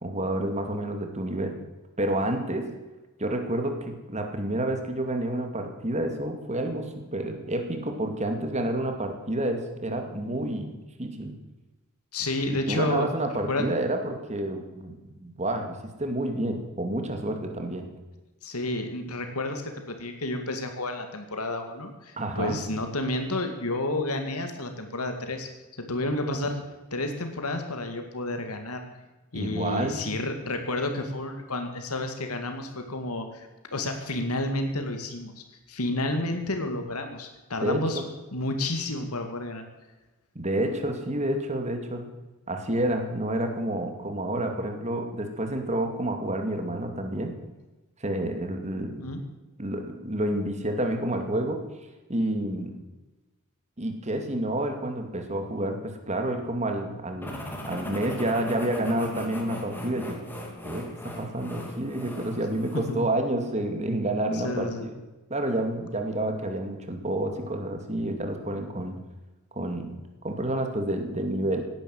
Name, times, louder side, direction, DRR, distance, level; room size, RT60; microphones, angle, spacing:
voice 1, 0.0-1.6 2.0-2.7 3.2-11.3 12.7-17.9 22.2-22.6 29.3-30.0 37.6-38.1 40.4-42.1 42.5-47.4 48.0-49.1 49.6-51.6 52.1-52.8 53.8-60.2 60.6-64.9 65.3-69.0 69.5-70.0 70.2-71.6, right 1 dB, 30° right, 5 dB, 2.3 m, -29 dB
voice 2, 12.1-13.1 13.5-13.7 18.4-25.5 25.8-26.6 26.9-28.8 29.3-38.0 38.3-39.6 49.0-49.2 62.9-63.0 64.3-64.9, left 2 dB, 85° left, 5 dB, 2.2 m, -30 dB
sound 1, 57.2-63.0, left 1 dB, 10° left, 2.7 m, -39 dB
17.5 x 10.5 x 7.8 m, 1.1 s
head